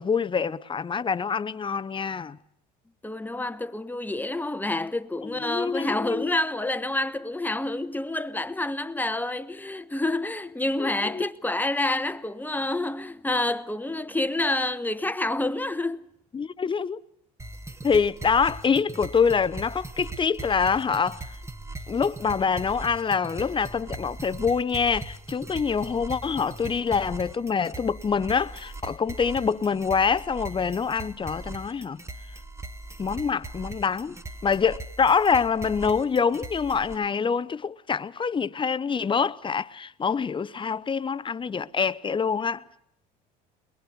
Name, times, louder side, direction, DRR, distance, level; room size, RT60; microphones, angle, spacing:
voice 1, 0.0-2.4 5.2-6.3 10.8-11.3 16.3-17.0 17.8-21.2 21.9-32.0 33.0-34.2 34.4-42.6, left 6 dB, 25° left, 0.8 m, -25 dB
voice 2, 3.0-16.0, left 2 dB, 10° left, 1.1 m, -28 dB
sound 1, 17.4-37.0, right 2 dB, 15° right, 1.3 m, -40 dB
22.5 x 22.0 x 6.6 m
supercardioid pair, 80°, 21 cm